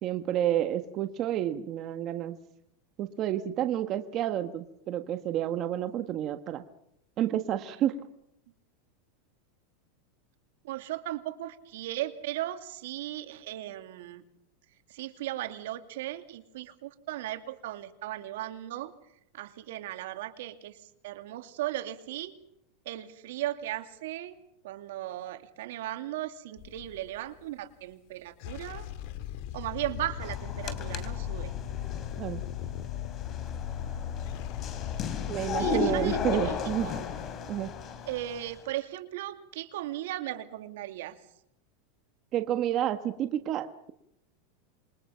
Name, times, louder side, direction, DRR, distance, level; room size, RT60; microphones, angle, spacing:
voice 1, 0.0-2.4 3.0-6.6 7.2-8.0 32.2-32.4 35.3-36.9 37.5-37.7 42.3-43.9, right 11 dB, 40° right, 8 dB, 1.4 m, -30 dB
voice 2, 10.6-14.2 14.9-18.9 19.3-22.4 22.8-24.4 24.6-28.9 29.5-31.5 35.6-36.5 36.8-37.0 38.1-41.2, right 14 dB, 75° right, 8 dB, 2.4 m, -37 dB
sound 1, 26.6-27.3 28.3-37.6, left 11 dB, 60° left, 1.9 m, -38 dB
sound 2, 30.2-38.6, left 4 dB, 35° left, 3.5 m, -35 dB
27.5 x 22.5 x 5.8 m, 0.77 s
supercardioid pair, 135°, 0 cm